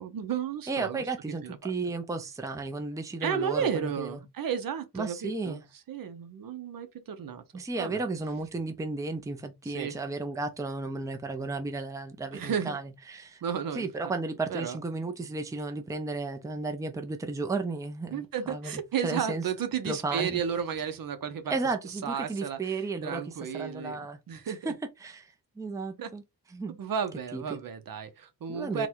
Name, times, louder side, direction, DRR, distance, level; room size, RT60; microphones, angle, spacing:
voice 1, 0.0-1.0 1.4-1.6 3.2-7.4 7.8-8.0 9.6-9.9 12.3-12.8 13.4-14.1 14.5-14.8 18.1-21.5 22.0-24.0 24.3-24.7 26.0-26.1 26.8-28.9, right 7 dB, 65° right, 0.8 m, -33 dB
voice 2, 0.7-4.2 4.9-5.6 7.5-13.4 13.7-19.5 19.8-20.4 21.5-23.2 23.5-24.2 24.6-24.7 25.0-26.2 26.5-26.8 27.3-27.6 28.5-28.9, right 3 dB, 10° right, 0.5 m, -34 dB
4.0 x 2.3 x 4.4 m
wide cardioid pair, 135°, 36 cm